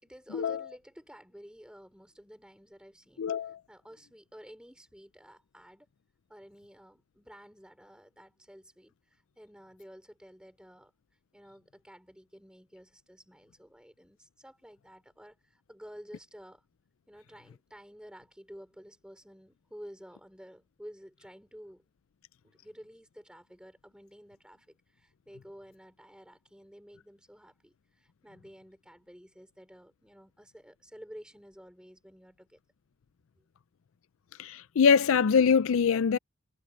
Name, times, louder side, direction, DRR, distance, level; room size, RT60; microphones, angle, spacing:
voice 1, 0.0-5.9 6.3-10.9 11.3-16.6 17.1-21.8 22.4-32.6 33.4-33.5, equal, 5° right, 4.7 m, -52 dB
voice 2, 3.2-3.5 34.4-36.2, left 6 dB, 65° left, 0.4 m, -23 dB
head